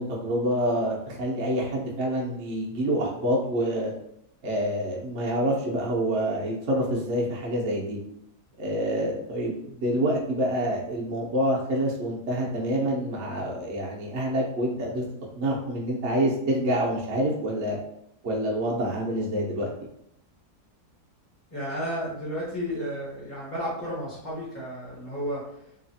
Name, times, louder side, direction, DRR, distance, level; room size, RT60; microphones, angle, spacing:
voice 1, 0.0-3.9 4.4-8.0 8.6-15.0 15.4-17.8 18.2-19.7, equal, 55° right, -3 dB, 0.8 m, -27 dB
voice 2, 21.5-25.6, equal, 10° left, -9 dB, 0.7 m, -32 dB
3.2 x 2.4 x 2.6 m, 0.75 s
omnidirectional pair, 1.7 m